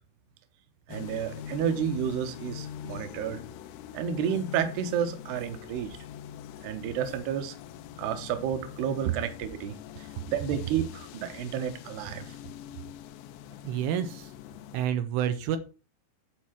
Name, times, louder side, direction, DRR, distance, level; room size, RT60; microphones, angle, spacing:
sound 1, 0.9-14.9, left 10 dB, 80° left, 2.6 m, -43 dB
voice 1, 0.9-3.4 3.9-6.0 6.6-7.5 8.0-12.3, right 8 dB, 70° right, 8 dB, 2.7 m, -31 dB
voice 2, 13.6-14.3 14.7-15.6, right 9 dB, 85° right, 8 dB, 3.2 m, -28 dB
11.5 x 4.4 x 6.0 m, 0.34 s
omnidirectional pair, 5.9 m